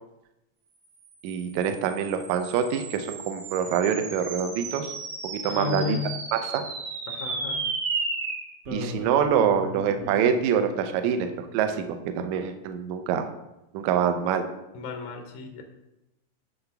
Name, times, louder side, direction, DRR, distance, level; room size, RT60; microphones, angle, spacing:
sound 1, 1.2-11.8, right 3 dB, 65° right, 1.5 m, -35 dB
voice 1, 1.2-4.9 5.2-6.0 6.3-6.7 8.7-13.3 13.7-14.5, right 8 dB, 85° right, 7 dB, 1.7 m, -25 dB
voice 2, 5.4-6.1 7.1-7.6 14.7-15.6, left 7 dB, 80° left, 4 dB, 1.5 m, -33 dB
9.8 x 3.4 x 5.7 m, 0.92 s
omnidirectional pair, 4.2 m